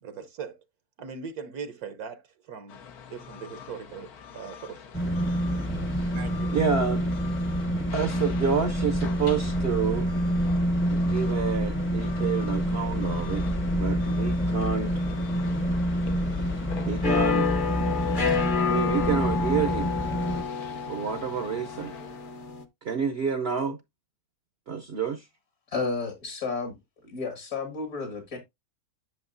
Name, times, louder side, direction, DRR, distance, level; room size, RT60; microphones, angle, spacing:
voice 1, 0.0-0.6 1.0-2.8 3.1-4.8 6.1-6.6, right 6 dB, 75° right, 1.4 m, -40 dB
sound 1, 2.7-22.5, left 7 dB, 80° left, 1.5 m, -45 dB
sound 2, 4.9-20.4, equal, 10° left, 0.6 m, -27 dB
voice 2, 6.5-7.0 7.9-10.1 10.9-13.4 13.7-15.2 16.9-17.5 18.7-19.9 20.9-21.9 22.8-23.8 24.7-25.2, right 6 dB, 55° right, 0.8 m, -28 dB
sound 3, 17.0-22.6, left 6 dB, 40° left, 0.9 m, -29 dB
voice 3, 25.7-26.7 27.0-28.4, left 4 dB, 65° left, 2.1 m, -32 dB
10.5 x 6.1 x 2.6 m
omnidirectional pair, 1.6 m